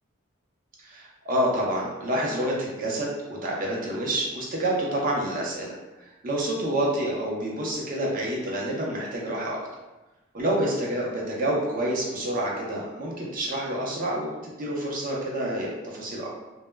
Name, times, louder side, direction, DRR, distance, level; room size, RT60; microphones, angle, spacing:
voice 1, 0.8-5.7 6.2-9.6 10.3-16.3, right 1 dB, 40° right, -3 dB, 0.5 m, -28 dB
2.1 x 2.0 x 3.2 m, 1.1 s
head